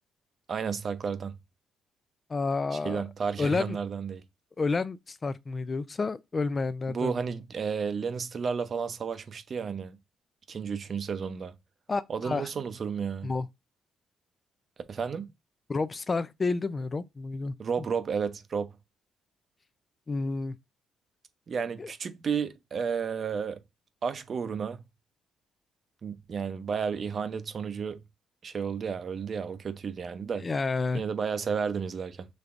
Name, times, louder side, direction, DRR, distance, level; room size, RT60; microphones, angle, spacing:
voice 1, 0.5-1.3 2.7-4.2 6.9-10.0 10.5-11.6 12.1-13.3 14.9-15.3 17.6-18.7 21.5-23.6 24.0-24.8 26.0-28.0 28.4-30.5 30.9-32.3, right 6 dB, 50° right, 0.6 m, -32 dB
voice 2, 2.3-3.0 3.4-3.8 4.6-7.2 11.9-12.5 13.2-13.5 15.7-17.6 20.1-20.6 21.8-21.9 30.4-31.0, left 3 dB, 30° left, 0.4 m, -30 dB
5.3 x 3.4 x 2.5 m
cardioid pair, 90°, 0 cm